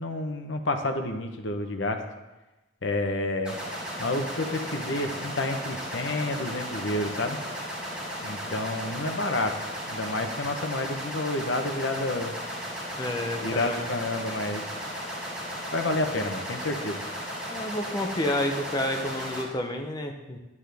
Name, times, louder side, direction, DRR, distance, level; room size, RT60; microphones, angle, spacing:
voice 1, 0.0-2.0 2.8-3.6 4.0-7.4 8.2-9.5 9.9-12.4 13.4-14.6 15.7-17.0, left 2 dB, 70° left, 6 dB, 0.9 m, -29 dB
sound 1, 3.4-19.4, equal, 5° right, 2.4 m, -35 dB
voice 2, 13.0-13.9 17.5-20.4, left 1 dB, 20° left, 3 dB, 0.6 m, -30 dB
9.7 x 9.4 x 3.4 m, 1.1 s
head